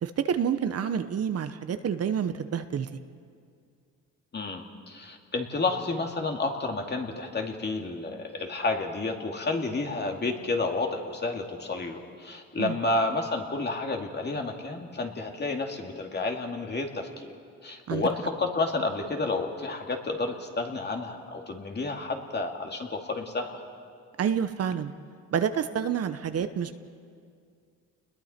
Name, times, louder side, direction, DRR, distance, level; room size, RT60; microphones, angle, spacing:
voice 1, 0.0-2.9 12.6-12.8 17.9-18.0 24.2-24.9 25.3-26.8, right 8 dB, 55° right, 10 dB, 1.0 m, -28 dB
voice 2, 4.3-17.3 17.6-23.6, left 3 dB, 35° left, 2 dB, 2.5 m, -30 dB
30.0 x 21.0 x 4.4 m, 2.2 s
cardioid pair, 90°, 30 cm